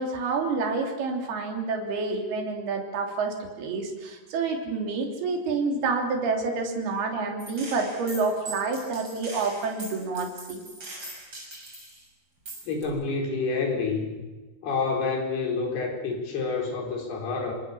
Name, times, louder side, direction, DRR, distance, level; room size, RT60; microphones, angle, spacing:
voice 1, 0.0-10.7, right 4 dB, 70° right, 2 dB, 5.1 m, -28 dB
Gunshot gunfire, 7.4-12.0 12.5-12.8, right 1 dB, 30° right, 7.3 m, -41 dB
voice 2, 12.6-14.2 14.6-17.5, left 4 dB, 75° left, 1 dB, 6.4 m, -28 dB
26.5 x 25.5 x 7.0 m, 1.3 s
omnidirectional pair, 4.7 m